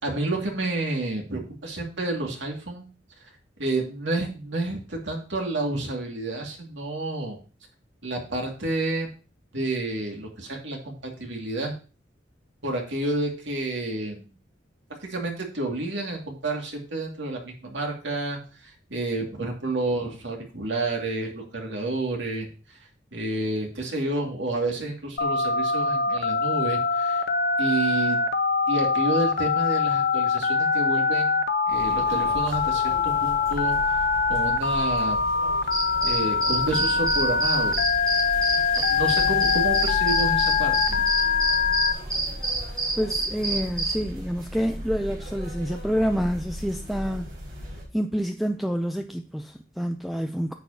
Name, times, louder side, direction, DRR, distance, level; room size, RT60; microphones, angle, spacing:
voice 1, 0.0-2.9 3.6-7.4 8.0-9.1 9.5-11.8 12.6-14.3 15.0-22.5 23.1-27.2 27.6-28.2 28.7-31.4 31.7-35.2 36.0-37.8 38.9-41.0, right 2 dB, 75° right, 1 dB, 2.3 m, -30 dB
Telephone, 25.2-41.9, left 5 dB, 60° left, 0.9 m, -23 dB
sound 1, 31.7-47.8, equal, 55° right, 4.9 m, -37 dB
sound 2, 35.7-44.0, right 3 dB, 20° right, 2.2 m, -28 dB
voice 2, 43.0-47.3 47.9-50.5, equal, ahead, 5 dB, 0.4 m, -28 dB
10.0 x 7.3 x 2.8 m, 0.35 s
head